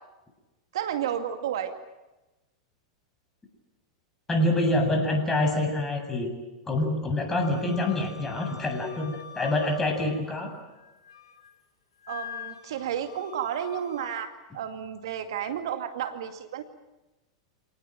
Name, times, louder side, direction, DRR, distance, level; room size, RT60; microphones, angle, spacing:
voice 1, 0.7-1.7 12.1-16.6, right 9 dB, 70° right, 7 dB, 2.3 m, -32 dB
voice 2, 4.3-6.3 6.7-10.5, left 1 dB, 15° left, 4 dB, 7.4 m, -26 dB
Wind instrument woodwind instrument, 7.4-10.4 10.8-11.5 12.0-14.2, left 8 dB, 80° left, 3.1 m, -45 dB
27.5 x 19.0 x 9.1 m, 1.1 s
hypercardioid pair, 100°, 3 cm